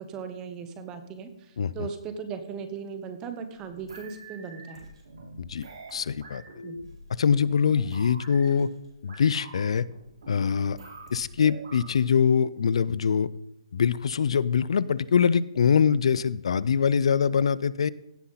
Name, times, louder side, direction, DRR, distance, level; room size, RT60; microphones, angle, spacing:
voice 1, 0.0-4.9 6.6-6.8, right 6 dB, 20° right, 9 dB, 0.9 m, -38 dB
voice 2, 1.6-1.9 5.4-6.4 7.2-8.7 9.0-9.8 10.3-10.8 11.1-13.3 13.7-17.9, left 7 dB, 70° left, 19 dB, 0.5 m, -23 dB
sound 1, 3.5-11.9, right 2 dB, 75° right, 4.0 m, -46 dB
16.0 x 5.7 x 4.0 m, 0.82 s
hypercardioid pair, 160°, 3 cm